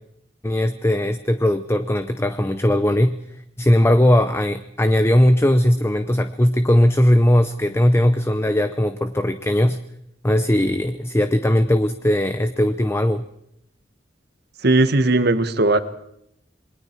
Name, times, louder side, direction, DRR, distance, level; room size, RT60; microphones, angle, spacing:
voice 1, 0.4-3.2 3.6-9.8 10.2-13.2, left 1 dB, 15° left, 10 dB, 0.7 m, -18 dB
voice 2, 14.6-15.8, right 2 dB, 60° right, 11 dB, 1.3 m, -17 dB
27.5 x 21.5 x 4.5 m, 0.75 s
head